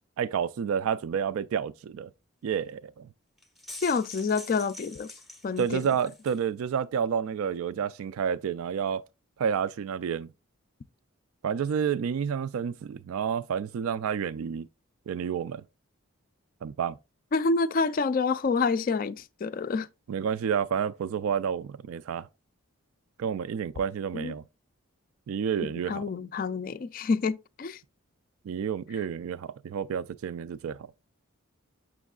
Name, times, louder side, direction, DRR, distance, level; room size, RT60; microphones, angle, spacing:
voice 1, 0.2-2.1 2.4-3.1 5.6-9.0 9.4-10.3 11.4-14.7 15.1-15.6 16.6-17.0 20.1-22.3 23.2-24.4 25.3-26.1 28.5-30.9, right 7 dB, 70° right, 0.3 m, -30 dB
sound 1, 3.4-6.4, left 1 dB, ahead, 0.6 m, -45 dB
voice 2, 3.8-5.1 5.4-5.9 17.3-19.9 24.1-24.3 25.6-27.8, left 4 dB, 40° left, 0.3 m, -28 dB
7.2 x 6.1 x 2.3 m
head